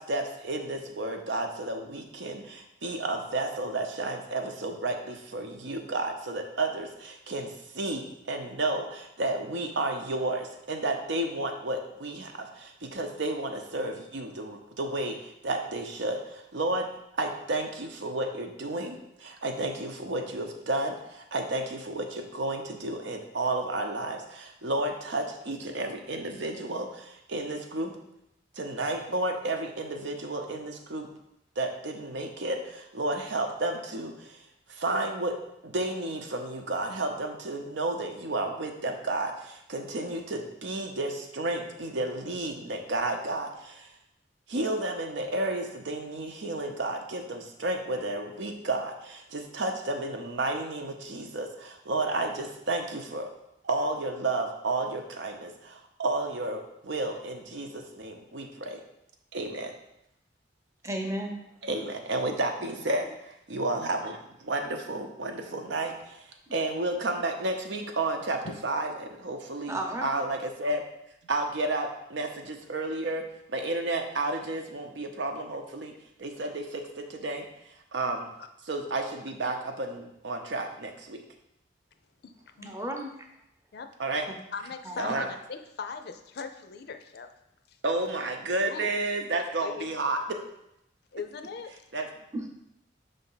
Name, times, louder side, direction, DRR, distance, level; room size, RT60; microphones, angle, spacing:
voice 1, 0.0-16.9 17.1-28.0 28.6-31.1 31.6-34.4 34.7-35.4 35.6-43.9 44.5-53.3 53.6-58.8 59.3-59.7 61.6-70.8 71.2-75.9 76.2-77.4 77.9-78.3 78.7-81.2 84.0-84.3 85.0-85.3 87.8-90.4 91.9-92.1, right 2 dB, 75° right, 4 dB, 0.8 m, -32 dB
voice 2, 60.8-61.4 69.7-70.1 82.6-83.1 84.8-85.2 92.3-92.5, right 1 dB, 15° right, 3 dB, 0.7 m, -33 dB
voice 3, 62.8-63.1 68.4-68.6 82.2-82.3 82.6-82.7 83.7-83.9 84.5-87.3 87.7-87.8 88.6-88.9 89.6-89.9 91.1-91.7, left 5 dB, 60° left, 8 dB, 0.5 m, -39 dB
5.4 x 3.5 x 5.6 m, 0.82 s
head